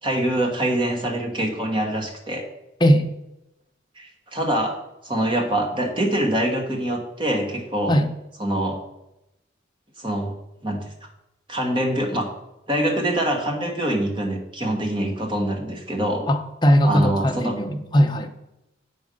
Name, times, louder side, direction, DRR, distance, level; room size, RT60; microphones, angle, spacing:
voice 1, 0.0-2.5 4.0-4.7 5.0-8.0 8.4-8.8 10.0-10.3 10.6-11.1 11.5-12.3 12.7-16.3 16.8-17.6, right 1 dB, 25° right, 3 dB, 1.4 m, -24 dB
voice 2, 16.3-18.3, equal, 25° left, 6 dB, 0.7 m, -19 dB
8.3 x 5.4 x 6.3 m, 0.89 s
head